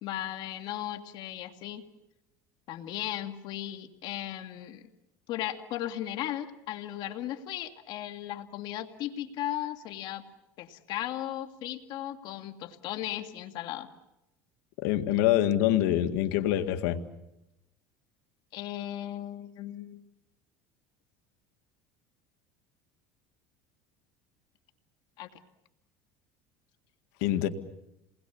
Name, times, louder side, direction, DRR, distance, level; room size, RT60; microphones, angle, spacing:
voice 1, 0.0-1.8 2.7-4.8 5.3-10.2 10.6-13.9 18.5-20.0 25.2-25.3, left 12 dB, 60° left, 6 dB, 2.0 m, -36 dB
voice 2, 14.8-17.0 27.2-27.5, left 12 dB, 80° left, 7 dB, 2.0 m, -25 dB
29.5 x 20.5 x 7.2 m, 0.90 s
supercardioid pair, 120°, 9 cm